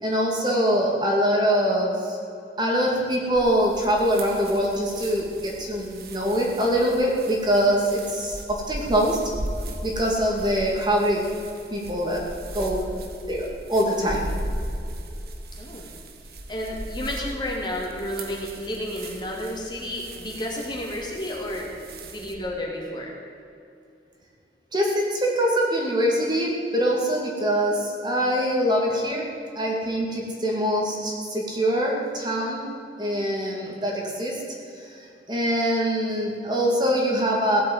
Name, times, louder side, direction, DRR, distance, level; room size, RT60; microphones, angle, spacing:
voice 1, 0.0-2.2 2.6-9.2 9.8-11.2 11.7-12.3 12.5-12.8 13.3-14.3 24.7-29.3 29.5-32.7 33.0-34.4 34.8-34.9 35.3-37.6, equal, 25° right, -1 dB, 2.6 m, -23 dB
sound 1, 3.3-22.3, right 1 dB, 60° right, 1.6 m, -37 dB
voice 2, 12.7-13.0 15.6-15.9 16.5-21.7 22.0-23.1, left 1 dB, 25° left, -2 dB, 2.8 m, -31 dB
17.0 x 8.5 x 9.4 m, 2.6 s
head